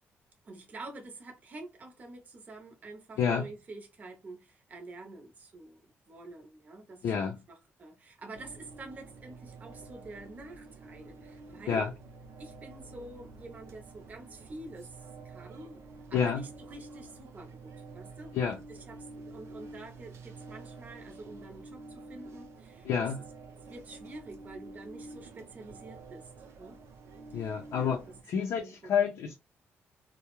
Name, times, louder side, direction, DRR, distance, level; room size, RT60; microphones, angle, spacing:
voice 1, 0.4-11.9 12.4-15.8 16.1-18.4 18.7-23.1 23.7-26.3 26.6-26.8 27.3-29.1, right 2 dB, 35° right, 0.6 m, -48 dB
voice 2, 7.0-7.4 11.7-11.9 16.1-16.4 18.3-18.6 22.8-23.2 27.3-28.0 28.3-29.3, left 7 dB, 80° left, 0.5 m, -29 dB
sound 1, 8.3-28.2, right 3 dB, 75° right, 0.5 m, -49 dB
2.3 x 2.0 x 2.9 m
cardioid pair, 125°, 5 cm